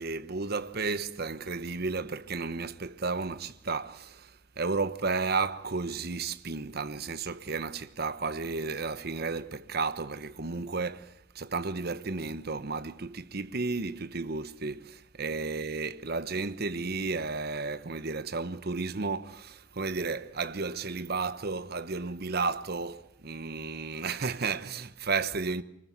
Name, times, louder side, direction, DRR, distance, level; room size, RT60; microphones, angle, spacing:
voice 1, 0.0-25.6, right 4 dB, 55° right, 1.1 m, -33 dB
25.0 x 21.0 x 9.5 m
head